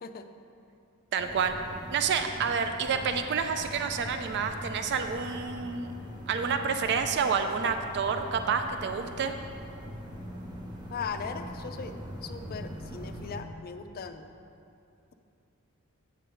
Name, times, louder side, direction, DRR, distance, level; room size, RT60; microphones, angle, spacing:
voice 1, 1.1-1.6 1.9-5.9 6.3-9.4, right 6 dB, 50° right, 7 dB, 0.3 m, -29 dB
sound 1, 1.2-13.4, equal, 20° right, 0.8 m, -42 dB
voice 2, 10.9-12.0 12.2-14.3, left 5 dB, 45° left, 8 dB, 0.4 m, -38 dB
8.4 x 3.8 x 6.8 m, 2.6 s
head